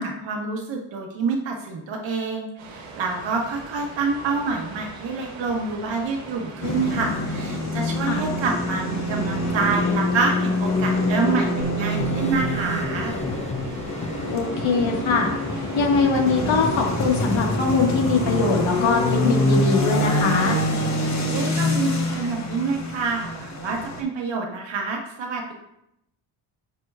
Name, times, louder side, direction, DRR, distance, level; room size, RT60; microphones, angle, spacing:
voice 1, 0.2-13.1 21.1-25.5, right 4 dB, 65° right, 1 dB, 1.4 m, -27 dB
sound 1, 2.6-22.3, right 3 dB, 85° right, 1.6 m, -41 dB
sound 2, 6.6-24.0, left 1 dB, 35° left, 1.2 m, -25 dB
sound 3, 11.6-14.3, left 3 dB, 15° left, 0.4 m, -34 dB
voice 2, 14.3-20.6, left 4 dB, 70° left, 0 dB, 1.7 m, -22 dB
9.0 x 5.0 x 2.4 m, 0.81 s
cardioid pair, 95°, 48 cm